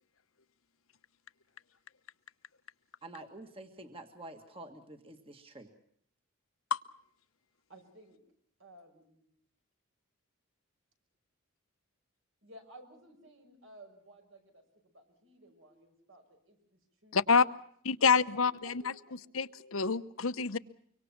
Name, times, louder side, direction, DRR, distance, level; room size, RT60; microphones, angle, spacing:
voice 1, 3.0-5.7, right 2 dB, 25° right, 6 dB, 1.7 m, -48 dB
voice 2, 7.7-8.2 8.6-9.3 12.4-14.6 14.9-17.4 18.3-19.1, right 1 dB, 70° right, 6 dB, 6.0 m, -56 dB
voice 3, 17.1-17.4 17.8-18.9 19.3-20.6, left 5 dB, 80° left, 13 dB, 0.9 m, -27 dB
25.0 x 24.5 x 5.9 m, 0.66 s
head